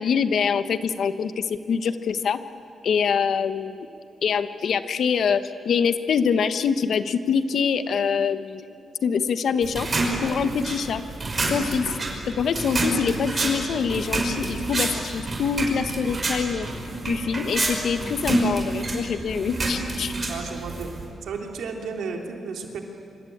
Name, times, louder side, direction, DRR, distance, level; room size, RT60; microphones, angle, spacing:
voice 1, 0.0-2.4 2.8-3.9 4.2-8.6 9.0-9.9 10.2-11.0 11.4-11.9 12.3-16.7 17.0-20.1, left 6 dB, 65° left, 10 dB, 1.2 m, -25 dB
sound 1, 9.6-21.1, right 2 dB, 25° right, 5.5 m, -28 dB
voice 2, 20.3-21.0 21.2-22.8, right 5 dB, 90° right, 2 dB, 3.4 m, -33 dB
25.5 x 25.0 x 8.8 m, 2.6 s
wide cardioid pair, 140°, 0 cm